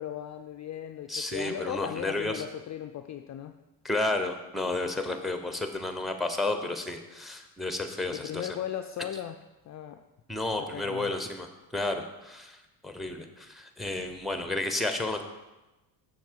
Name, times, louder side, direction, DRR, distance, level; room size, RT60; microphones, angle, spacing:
voice 1, 0.0-3.6 8.1-10.1 10.6-11.1, left 10 dB, 40° left, 7 dB, 0.4 m, -37 dB
voice 2, 1.1-2.4 3.8-8.5 10.3-11.5 11.7-12.6 12.8-15.2, left 2 dB, ahead, 7 dB, 0.9 m, -31 dB
7.2 x 6.6 x 4.6 m, 1.1 s
cardioid pair, 85°, 46 cm